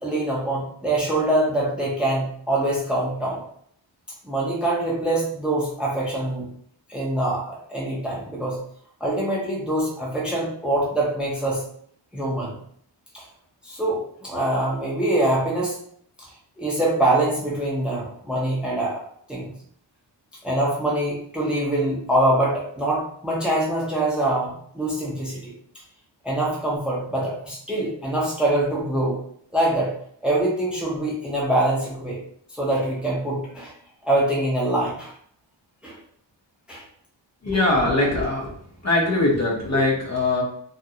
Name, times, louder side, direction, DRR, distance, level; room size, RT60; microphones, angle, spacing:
voice 1, 0.0-3.4 4.2-6.5 6.9-8.6 9.0-11.6 12.1-12.6 13.1-13.2 13.6-15.8 16.6-19.0 19.3-19.5 20.4-25.5 26.2-29.2 29.5-29.9 30.2-32.2 32.6-33.7 34.0-35.1 35.8-36.0 36.7-36.8 37.5-37.6, right 1 dB, ahead, -4 dB, 0.7 m, -24 dB
voice 2, 37.4-38.5 38.8-40.4, left 2 dB, 35° left, -3 dB, 0.8 m, -21 dB
2.4 x 2.2 x 2.8 m, 0.63 s
wide cardioid pair, 85°, 45 cm